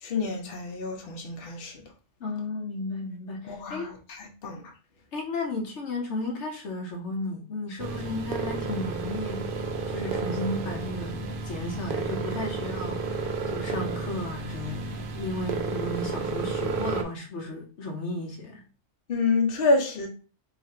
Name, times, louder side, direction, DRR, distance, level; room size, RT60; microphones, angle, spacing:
voice 1, 0.0-1.8 3.5-4.6 19.1-20.1, left 3 dB, 55° left, 0.9 m, -28 dB
voice 2, 2.2-3.9 5.1-18.6, left 2 dB, 70° left, 1.1 m, -34 dB
sound 1, 7.8-17.0, right 4 dB, 55° right, 0.7 m, -32 dB
3.0 x 2.4 x 4.2 m
omnidirectional pair, 1.2 m